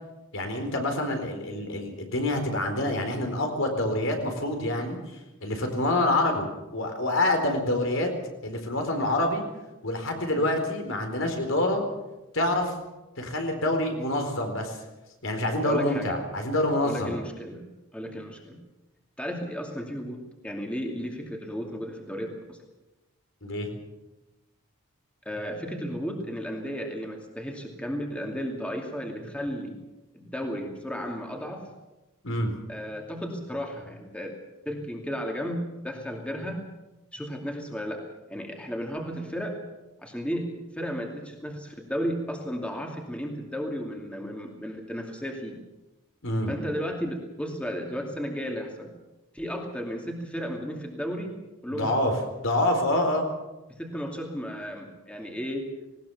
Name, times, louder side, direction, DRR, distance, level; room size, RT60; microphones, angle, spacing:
voice 1, 0.3-8.1 8.4-9.4 9.8-11.8 12.3-12.7 13.2-14.8 15.2-17.2 23.4-23.7 32.2-32.5 46.2-46.5 51.7-52.1 52.4-53.2, left 1 dB, 70° left, 4 dB, 4.2 m, -26 dB
voice 2, 15.6-16.2 16.8-17.6 17.9-18.6 19.2-22.6 25.2-29.8 30.1-31.7 32.7-34.3 34.7-36.6 37.1-38.0 38.3-39.6 40.0-40.5 40.7-45.6 46.5-48.9 49.3-51.4 51.6-52.1 53.7-55.7, equal, 5° left, 1 dB, 2.5 m, -34 dB
19.5 x 19.0 x 7.1 m, 1.0 s
head